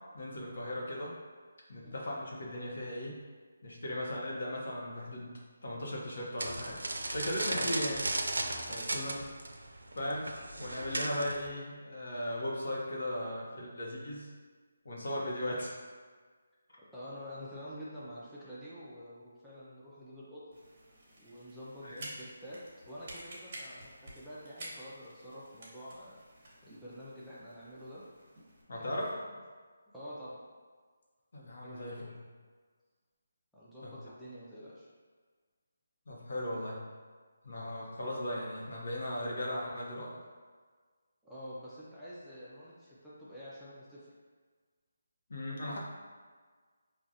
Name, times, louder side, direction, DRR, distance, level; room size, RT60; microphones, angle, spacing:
voice 1, 0.1-1.1 1.7-3.2 3.6-6.8 7.1-8.0 8.9-9.1 9.9-10.3 10.6-14.3 14.8-15.8 21.8-22.1 28.7-29.2 31.3-32.2 33.8-33.9 36.1-36.8 37.4-40.1 45.3-45.8, left 1 dB, 65° left, -3 dB, 0.9 m, -37 dB
sound 1, 6.4-11.5, right 2 dB, 90° right, 0.4 m, -36 dB
voice 2, 16.9-20.4 21.2-22.6 22.8-26.2 26.6-28.0 28.7-29.1 29.9-30.4 31.6-32.0 33.5-34.9 41.2-44.1, equal, ahead, -12 dB, 0.5 m, -47 dB
sound 2, 20.5-28.6, right 1 dB, 40° right, 0.9 m, -51 dB
4.8 x 2.4 x 2.7 m, 1.5 s
figure-of-eight pair, 165°, 0 cm